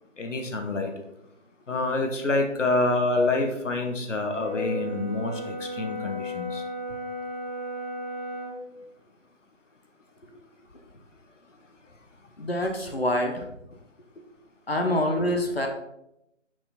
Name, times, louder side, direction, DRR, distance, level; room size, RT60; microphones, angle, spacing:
voice 1, 0.2-0.9 1.7-6.6, left 2 dB, 75° left, 4 dB, 1.3 m, -27 dB
Brass instrument, 4.3-8.6, left 1 dB, 30° left, 1.9 m, -34 dB
voice 2, 12.4-13.5 14.7-15.7, left 1 dB, 50° left, 3 dB, 0.9 m, -26 dB
5.9 x 4.8 x 4.1 m, 0.84 s
figure-of-eight pair, 180°, 38 cm